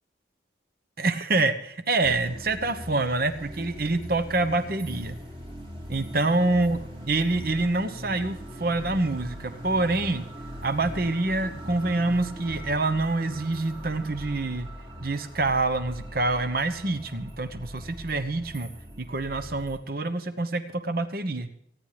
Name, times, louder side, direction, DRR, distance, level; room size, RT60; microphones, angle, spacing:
voice 1, 1.0-5.2 5.9-6.8 7.1-10.2 10.6-14.7 15.0-18.7 19.0-21.5, right 2 dB, 55° right, 10 dB, 1.0 m, -26 dB
sound 1, 2.0-19.8, equal, 30° right, 2.5 m, -41 dB
29.0 x 10.0 x 3.4 m, 0.72 s
head